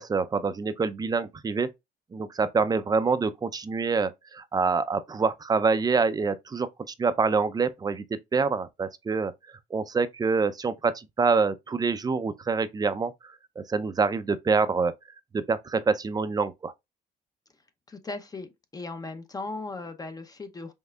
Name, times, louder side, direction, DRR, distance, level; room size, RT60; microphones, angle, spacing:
voice 1, 0.0-1.7 2.1-6.7 7.0-9.3 9.7-13.1 13.6-14.9 15.3-16.7, right 4 dB, 25° right, 0.5 m, -26 dB
voice 2, 17.9-20.7, left 3 dB, 20° left, 0.8 m, -37 dB
5.4 x 3.5 x 2.4 m
cardioid pair, 110°, 17 cm